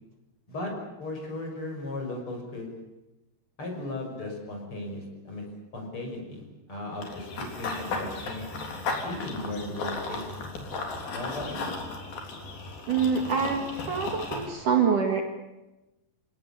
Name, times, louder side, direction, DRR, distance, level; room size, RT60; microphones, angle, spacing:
voice 1, 1.0-2.7 3.6-5.5 5.7-10.5 11.1-11.7, left 2 dB, 30° left, 1 dB, 6.8 m, -36 dB
Run / Bird vocalization bird call bird song, 7.0-14.5, left 3 dB, 60° left, 5.3 m, -35 dB
voice 2, 12.9-15.2, right 6 dB, 55° right, 3 dB, 3.2 m, -25 dB
28.0 x 18.0 x 8.7 m, 1.0 s
omnidirectional pair, 4.9 m